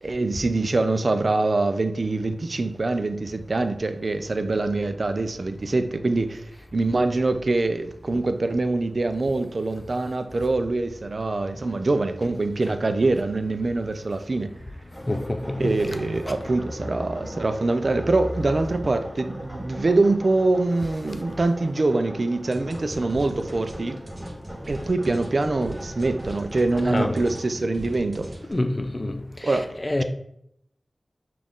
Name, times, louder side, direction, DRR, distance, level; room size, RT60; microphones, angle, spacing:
voice 1, 0.0-6.5 6.7-14.5 15.6-24.0 24.7-28.3 29.4-29.7, right 2 dB, 60° right, 0.4 m, -24 dB
sound 1, 14.9-27.5, equal, 5° right, 1.7 m, -41 dB
voice 2, 15.1-15.7 16.3-16.4 17.2-17.3 26.8-27.2 28.5-30.0, left 1 dB, 30° left, 0.5 m, -27 dB
sound 2, 22.5-28.5, right 1 dB, 35° right, 1.1 m, -39 dB
5.8 x 2.5 x 3.6 m
cardioid pair, 45°, 0 cm